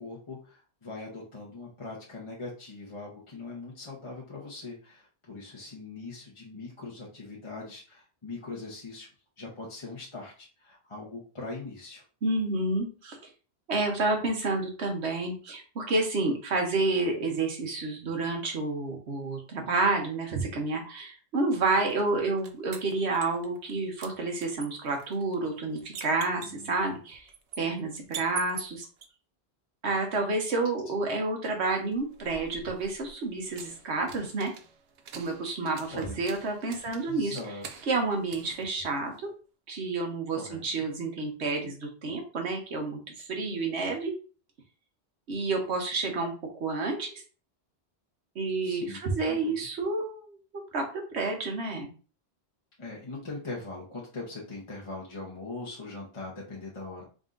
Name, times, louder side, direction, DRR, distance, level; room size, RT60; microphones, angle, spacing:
voice 1, 0.0-9.1 9.4-12.0 26.4-26.8 35.9-36.2 37.1-37.8 40.3-40.6 48.6-49.5 52.8-57.0, left 3 dB, 30° left, -5 dB, 0.9 m, -41 dB
voice 2, 12.2-13.2 13.7-27.3 27.6-28.9 29.8-34.5 35.2-37.4 37.9-39.1 39.7-44.1 45.3-47.2 48.3-50.8 51.1-51.9, right 3 dB, 90° right, 2 dB, 1.3 m, -29 dB
sound 1, 21.9-23.7 24.0-29.1 31.9-39.4, right 6 dB, 70° right, 0.8 m, -45 dB
3.8 x 2.7 x 3.7 m, 0.37 s
omnidirectional pair, 1.1 m